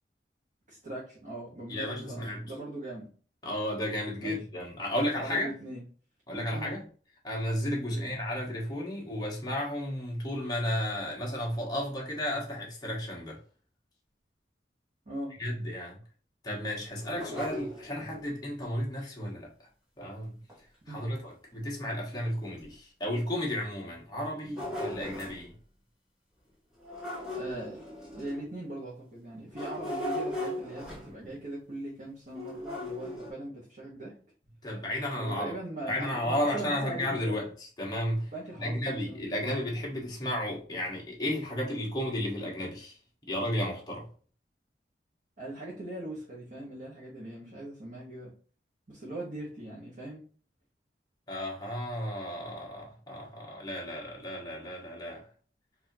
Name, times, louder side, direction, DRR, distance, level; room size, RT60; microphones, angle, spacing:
voice 1, 0.7-3.1 4.2-4.4 5.2-5.8 6.5-6.7 7.9-8.1 15.1-15.3 20.9-21.2 27.3-27.8 28.1-34.1 35.1-37.4 38.3-39.2 45.4-48.3 48.9-50.2, right 1 dB, 45° right, 1.1 m, -40 dB
voice 2, 1.7-2.5 3.4-5.5 6.3-6.8 7.2-13.4 15.4-16.0 16.4-19.5 20.0-20.4 20.9-25.5 34.6-35.5 35.8-43.0 43.3-44.1 51.3-55.2, left 1 dB, 25° left, 1.2 m, -33 dB
sound 1, 16.8-18.3 20.5-20.6 21.1-21.2 21.9-22.0 22.6-22.7 24.1-25.5 26.8-28.6 29.5-31.4 32.3-33.3, left 1 dB, 5° right, 1.5 m, -38 dB
4.3 x 2.8 x 2.7 m
head